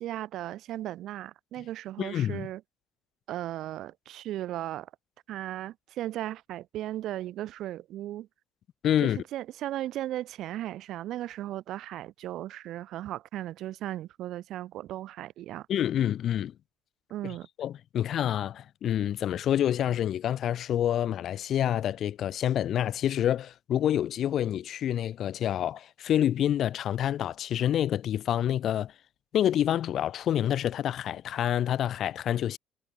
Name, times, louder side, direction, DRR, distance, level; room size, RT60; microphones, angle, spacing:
voice 1, 0.0-2.6 3.3-4.9 5.3-8.3 9.0-15.7 17.1-17.5, right 13 dB, 65° right, 3.1 m, -36 dB
voice 2, 2.0-2.5 8.8-9.2 15.7-16.5 17.2-28.9 29.3-32.6, left 11 dB, 55° left, 0.7 m, -27 dB
cardioid pair, 115°, 0 cm